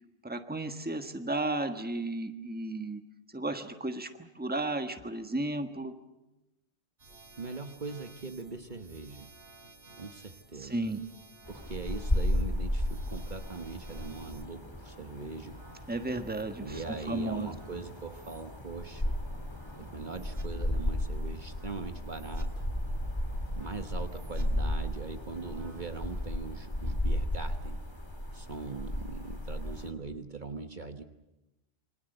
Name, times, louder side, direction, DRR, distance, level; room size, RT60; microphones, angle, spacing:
voice 1, 0.2-3.0 3.3-5.9 10.6-11.0 15.9-17.5, right 2 dB, 10° right, 7 dB, 1.4 m, -34 dB
sound 1, 7.0-26.3, right 3 dB, 70° right, 4.4 m, -55 dB
voice 2, 7.4-9.3 10.0-10.8 11.5-15.6 16.6-19.2 19.8-22.6 23.5-27.8 28.3-31.0, right 4 dB, 45° right, 7 dB, 1.3 m, -41 dB
sound 2, 11.5-29.9, left 1 dB, 25° left, 2.9 m, -34 dB
27.5 x 24.5 x 7.9 m, 0.99 s
omnidirectional pair, 1.1 m